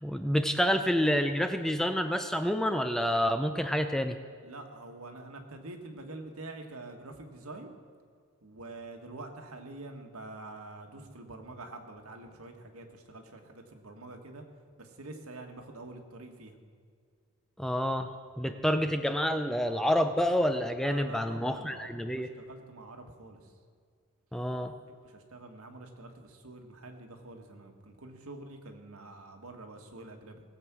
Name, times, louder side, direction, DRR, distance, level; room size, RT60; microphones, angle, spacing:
voice 1, 0.0-4.2 17.6-18.1 18.4-22.3 24.3-24.7, equal, ahead, 8 dB, 0.4 m, -28 dB
voice 2, 4.4-7.7 8.4-14.4 14.8-16.6 20.8-23.5 25.0-30.4, right 2 dB, 80° right, 4 dB, 1.6 m, -46 dB
18.5 x 8.1 x 6.1 m, 2.1 s
head